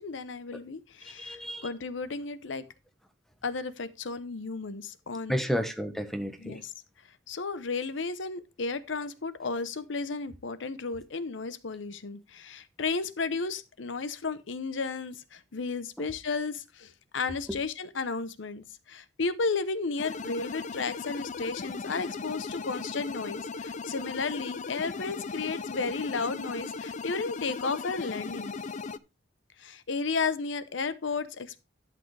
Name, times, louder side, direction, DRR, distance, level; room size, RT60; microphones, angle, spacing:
voice 1, 0.0-2.6 3.4-5.4 6.4-6.7 7.3-28.5 29.6-31.6, left 4 dB, 70° left, 0.8 m, -33 dB
voice 2, 1.0-1.7 5.3-6.6 16.0-16.1 17.5-17.6, equal, ahead, 1.1 m, -32 dB
sound 1, 20.0-29.0, left 4 dB, 40° left, 0.5 m, -37 dB
12.0 x 7.7 x 3.3 m
head